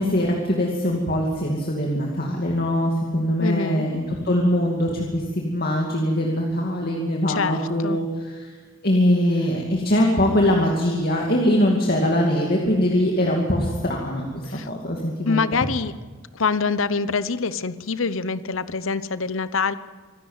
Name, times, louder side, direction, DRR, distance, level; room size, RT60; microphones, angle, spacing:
voice 1, 0.0-8.5 8.8-15.6, equal, 45° left, -1 dB, 2.4 m, -22 dB
voice 2, 3.4-3.9 7.3-8.0 14.5-14.7 15.2-15.9 16.3-19.8, left 4 dB, 70° left, 15 dB, 0.9 m, -25 dB
25.5 x 13.0 x 9.6 m, 1.4 s
head